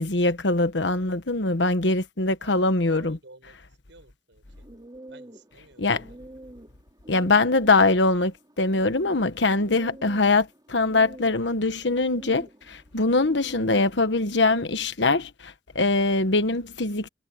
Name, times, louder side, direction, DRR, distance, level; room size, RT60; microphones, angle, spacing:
voice 1, 0.0-3.2 5.8-6.0 7.1-17.1, left 3 dB, 75° left, 1.3 m, -23 dB
voice 2, 2.4-3.6 3.9-4.7 5.1-6.2, right 2 dB, 80° right, 7.4 m, -51 dB
sound 1, 4.5-14.6, right 1 dB, 20° right, 5.1 m, -47 dB
head